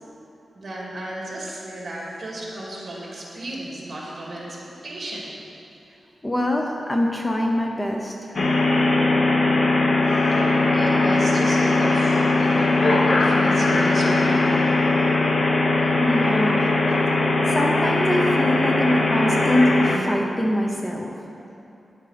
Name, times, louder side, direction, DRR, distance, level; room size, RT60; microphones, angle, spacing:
voice 1, 0.5-5.8 10.0-15.1, right 1 dB, 45° right, -4 dB, 2.3 m, -34 dB
voice 2, 6.2-8.3 16.0-16.7 17.5-21.1, left 1 dB, 15° left, 1 dB, 0.6 m, -24 dB
sound 1, 8.4-20.0, left 2 dB, 50° left, 0.9 m, -20 dB
9.6 x 7.8 x 5.0 m, 2.9 s
wide cardioid pair, 145°, 0 cm